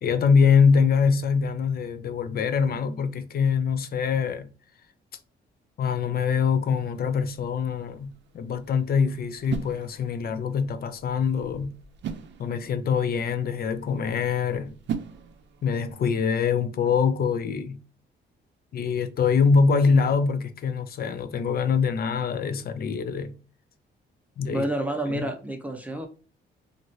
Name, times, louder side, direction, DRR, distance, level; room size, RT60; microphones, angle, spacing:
voice 1, 0.0-4.5 5.8-11.7 12.4-14.7 15.6-17.8 18.7-23.4 24.4-24.7 25.1-25.3, left 6 dB, 50° left, 0.5 m, -24 dB
sound 1, 6.7-15.9, right 7 dB, 65° right, 0.5 m, -40 dB
voice 2, 24.5-26.1, right 1 dB, 5° right, 0.7 m, -29 dB
2.9 x 2.6 x 2.7 m
cardioid pair, 90°, 20 cm